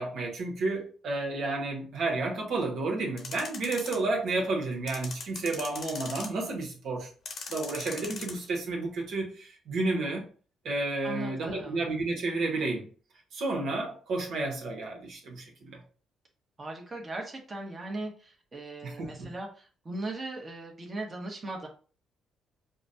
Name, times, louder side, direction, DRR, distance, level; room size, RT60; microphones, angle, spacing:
voice 1, 0.0-7.1 7.5-10.3 10.6-12.9 13.3-15.8 18.8-19.3, right 2 dB, 75° right, 0 dB, 1.1 m, -31 dB
sound 1, 3.2-4.0 4.9-6.5 7.3-8.3, left 4 dB, 60° left, 0.8 m, -39 dB
voice 2, 11.0-11.8 16.6-21.7, right 2 dB, 30° right, 0 dB, 1.1 m, -38 dB
4.9 x 2.2 x 2.6 m, 0.39 s
cardioid pair, 90°, 0 cm